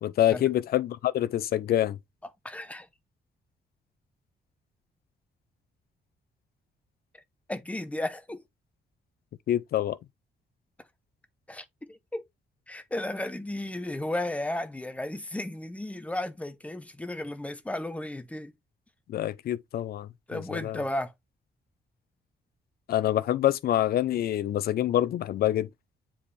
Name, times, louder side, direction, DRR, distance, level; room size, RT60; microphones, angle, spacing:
voice 1, 0.0-2.0 9.5-10.0 19.1-20.8 22.9-25.7, left 12 dB, 60° left, 0.5 m, -26 dB
voice 2, 2.4-2.9 7.5-8.4 11.5-12.2 12.7-18.5 20.3-21.1, left 1 dB, 5° left, 0.6 m, -34 dB
7.5 x 4.3 x 3.2 m
wide cardioid pair, 175°, 18 cm